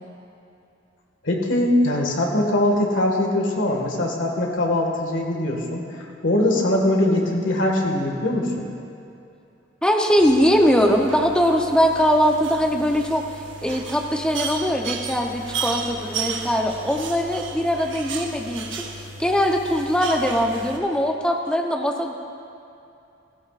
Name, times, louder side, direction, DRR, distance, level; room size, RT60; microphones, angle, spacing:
voice 1, 1.2-8.7, left 1 dB, 90° left, 0 dB, 1.9 m, -22 dB
voice 2, 9.8-18.8 19.2-22.1, equal, 5° left, 1 dB, 0.8 m, -21 dB
sound 1, 10.2-20.8, right 4 dB, 80° right, 1.1 m, -34 dB
15.5 x 15.0 x 2.5 m, 2.7 s
head